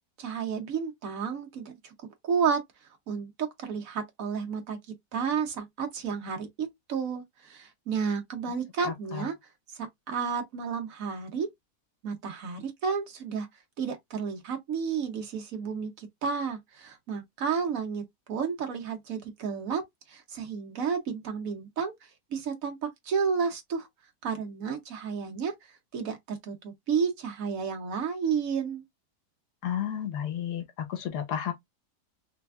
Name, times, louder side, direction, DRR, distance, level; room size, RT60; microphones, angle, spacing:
voice 1, 0.2-1.9 2.2-2.6 3.1-4.8 5.1-9.3 9.8-11.5 12.0-13.5 13.8-19.8 20.1-22.8 23.0-23.9 24.2-25.5 25.9-28.8, right 6 dB, 65° right, 1.1 m, -31 dB
voice 2, 8.8-9.2 29.6-31.5, left 9 dB, 85° left, 1.4 m, -32 dB
3.3 x 3.2 x 2.3 m
omnidirectional pair, 1.7 m